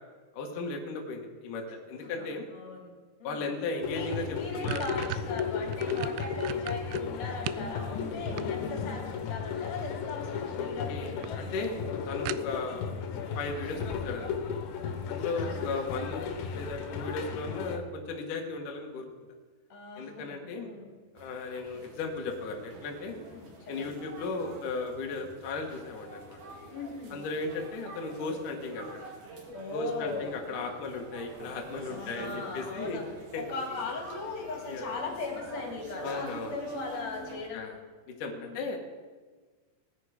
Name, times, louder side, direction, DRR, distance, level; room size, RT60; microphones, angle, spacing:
voice 1, 0.3-2.4 3.2-4.9 5.8-6.0 10.5-13.0 13.3-14.5 15.1-19.1 20.0-20.7 21.1-23.2 23.7-26.4 27.1-29.0 29.7-33.0 33.3-33.4 34.7-34.8 36.0-36.6 37.5-37.8 38.2-38.8, left 3 dB, 55° left, 1 dB, 2.6 m, -36 dB
voice 2, 2.5-2.9 3.2-3.4 3.9-11.6 12.7-12.8 15.4-15.6 19.7-20.9 23.3-23.9 26.7-27.2 29.5-30.3 31.9-33.0 33.4-37.7 38.3-38.6, left 4 dB, 40° left, -1 dB, 3.7 m, -39 dB
sound 1, 3.8-17.8, left 6 dB, 75° left, 3.4 m, -35 dB
sound 2, 3.8-3.9 4.2-7.7 8.1-9.0 10.1-10.5 10.8-10.9 11.2-11.3 11.6-11.7 12.3-12.8, right 15 dB, 85° right, 2.4 m, -38 dB
sound 3, 21.1-37.5, right 2 dB, 50° right, 3.2 m, -46 dB
19.5 x 9.7 x 5.0 m, 1.4 s
omnidirectional pair, 5.4 m